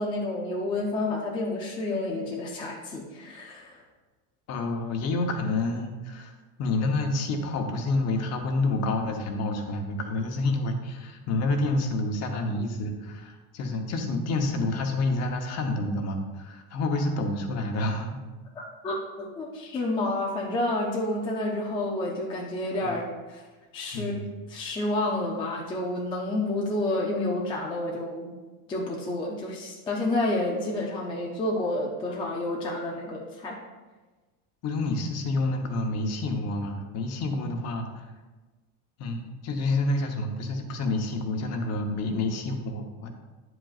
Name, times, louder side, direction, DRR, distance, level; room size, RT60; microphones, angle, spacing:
voice 1, 0.0-3.8 18.6-23.4 23.7-24.2 24.5-28.4 28.7-33.6, left 2 dB, 15° left, -2 dB, 0.3 m, -29 dB
voice 2, 4.5-6.3 6.6-18.2 22.8-23.0 23.9-24.3 34.6-38.1 39.0-43.1, left 2 dB, 35° left, 4 dB, 0.9 m, -28 dB
9.8 x 7.8 x 2.4 m, 1.3 s
cardioid pair, 165°, 44 cm